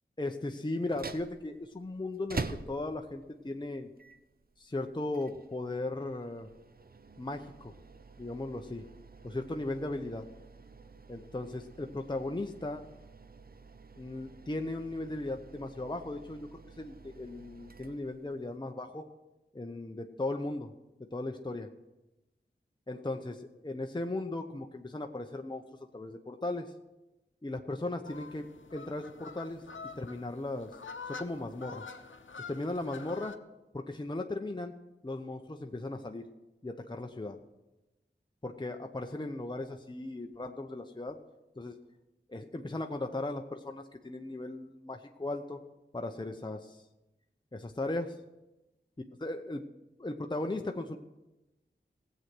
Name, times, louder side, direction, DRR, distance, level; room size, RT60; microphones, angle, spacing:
voice 1, 0.2-3.9 4.6-6.5 7.2-7.8 8.2-8.8 9.2-10.2 11.1-12.8 14.0-19.1 19.5-20.7 21.1-21.7 22.9-25.6 25.9-26.7 27.4-28.5 28.7-29.6 30.0-30.8 31.1-31.8 32.5-33.3 33.7-34.7 35.0-36.2 36.6-37.4 38.4-41.2 41.6-41.8 42.3-45.6 45.9-46.8 47.5-48.2 49.2-49.6 50.0-51.0, left 2 dB, 20° left, 4 dB, 0.8 m, -37 dB
sound 1, 0.8-18.6, right 4 dB, 50° right, 0.7 m, -47 dB
sound 2, 28.0-33.4, left 4 dB, 75° left, 0.8 m, -46 dB
16.5 x 7.9 x 6.1 m, 1.0 s
wide cardioid pair, 55°, 20 cm